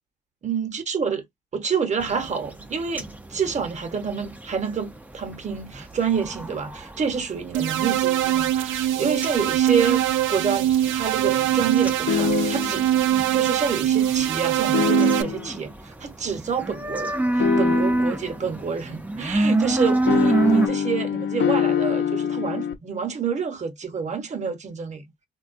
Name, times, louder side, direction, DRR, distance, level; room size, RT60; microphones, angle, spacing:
voice 1, 0.4-1.2 1.5-10.0 10.3-12.9 13.3-25.0, right 6 dB, 35° right, 0.9 m, -28 dB
sound 1, 2.0-20.7, right 2 dB, 10° right, 0.5 m, -29 dB
sound 2, 7.5-15.2, right 12 dB, 80° right, 0.4 m, -22 dB
sound 3, 12.1-12.9 14.7-15.5 17.4-18.2 20.1-22.7, left 8 dB, 65° left, 0.7 m, -24 dB
3.4 x 2.3 x 2.5 m
cardioid pair, 90°, 20 cm